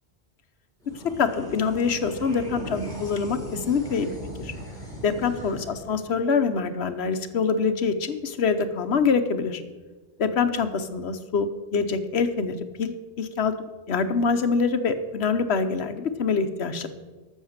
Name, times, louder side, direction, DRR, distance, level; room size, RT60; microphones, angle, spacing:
sound 1, 0.8-7.5, right 1 dB, 5° left, 3.7 m, -39 dB
voice 1, 1.2-4.5 5.0-9.6 10.2-13.5 13.9-16.9, left 5 dB, 70° left, 9 dB, 1.1 m, -25 dB
14.0 x 6.5 x 6.5 m, 1.3 s
omnidirectional pair, 1.2 m